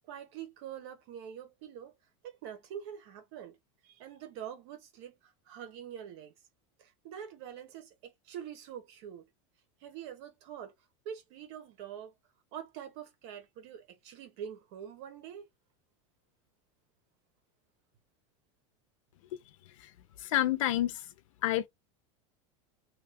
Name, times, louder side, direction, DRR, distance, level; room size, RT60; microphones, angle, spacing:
voice 1, 0.1-1.9 2.2-3.6 3.8-5.1 5.5-6.3 6.8-9.3 9.8-10.7 11.0-12.1 12.5-15.5, right 9 dB, 55° right, 1.1 m, -45 dB
voice 2, 20.2-21.0 21.4-21.7, left 14 dB, 85° left, 0.6 m, -28 dB
2.9 x 2.4 x 3.4 m
supercardioid pair, 160°, 16 cm